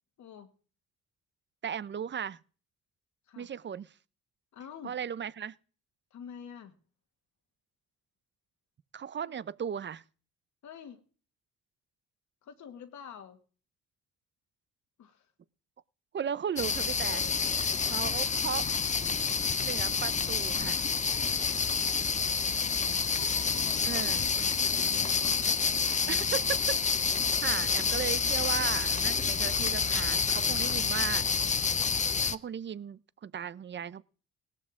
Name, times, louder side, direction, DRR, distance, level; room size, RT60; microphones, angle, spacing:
voice 1, 0.2-0.5 3.3-3.5 4.5-5.0 6.1-6.8 9.2-9.3 10.6-11.0 12.4-13.4 15.0-15.3 17.0-18.4 22.3-23.0 23.3-25.4, left 8 dB, 70° left, 2.1 m, -48 dB
voice 2, 1.6-2.4 3.4-3.9 4.8-5.6 8.9-10.0 16.1-17.2 17.9-18.6 19.6-20.8 23.9-24.2 26.1-26.8 27.4-31.3 32.2-34.0, right 8 dB, 40° right, 0.6 m, -36 dB
sound 1, 16.6-32.3, left 5 dB, 25° left, 0.6 m, -28 dB
18.0 x 13.5 x 3.7 m
cardioid pair, 90°, 30 cm